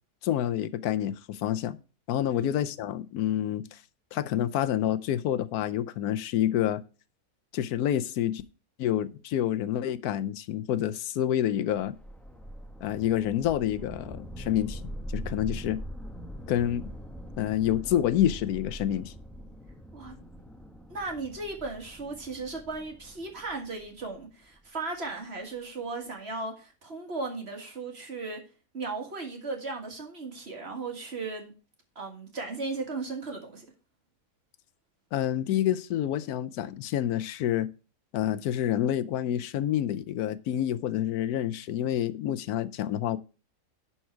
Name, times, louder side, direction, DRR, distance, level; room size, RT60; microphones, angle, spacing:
voice 1, 0.2-1.8 2.1-3.8 4.1-6.8 7.5-8.4 8.8-12.0 12.8-14.8 15.1-15.8 16.5-16.9 17.4-19.1 35.1-37.7 38.1-43.2, left 11 dB, 85° left, 1.1 m, -28 dB
voice 2, 2.3-2.6 19.9-20.2 20.9-28.4 28.7-31.5 32.0-33.7, right 3 dB, 45° right, 1.9 m, -36 dB
sound 1, 11.7-24.8, equal, ahead, 0.5 m, -42 dB
11.0 x 4.4 x 4.5 m
omnidirectional pair, 1.6 m